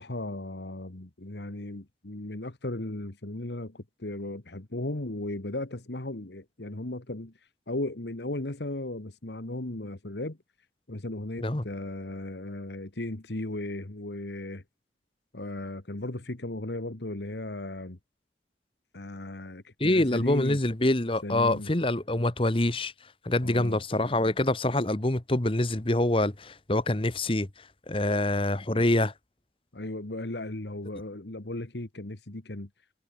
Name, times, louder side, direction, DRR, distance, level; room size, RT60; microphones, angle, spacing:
voice 1, 0.0-7.3 7.7-10.4 10.9-14.6 15.3-18.0 18.9-20.6 21.2-21.7 23.4-23.8 28.7-28.9 29.7-32.7, left 1 dB, 75° left, 1.7 m, -36 dB
voice 2, 19.8-22.9 23.2-29.1, left 1 dB, 30° left, 1.3 m, -26 dB
head